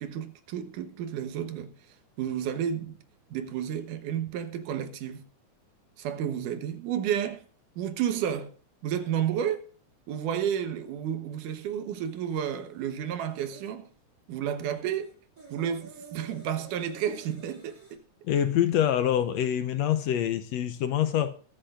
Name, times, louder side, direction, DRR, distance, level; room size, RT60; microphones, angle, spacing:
voice 1, 0.0-1.7 2.2-3.0 3.3-5.2 6.0-7.4 7.8-8.5 8.8-9.6 10.1-13.9 14.3-15.1 15.5-18.0, right 9 dB, 80° right, 2.7 m, -31 dB
sound 1, 12.0-13.7 14.6-18.0, right 4 dB, 25° right, 5.7 m, -52 dB
voice 2, 18.2-21.4, left 10 dB, 75° left, 1.7 m, -25 dB
22.5 x 9.1 x 2.5 m
omnidirectional pair, 3.6 m